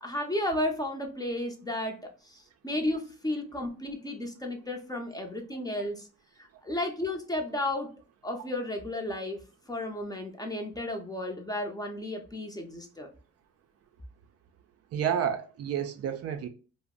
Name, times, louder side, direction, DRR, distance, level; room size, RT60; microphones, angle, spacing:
voice 1, 0.0-6.1 6.4-7.9 8.2-9.4 9.7-13.1, left 1 dB, 15° left, 0.6 m, -33 dB
voice 2, 14.9-16.5, right 8 dB, 55° right, 0.4 m, -30 dB
2.5 x 2.0 x 3.6 m
cardioid pair, 90°, 30 cm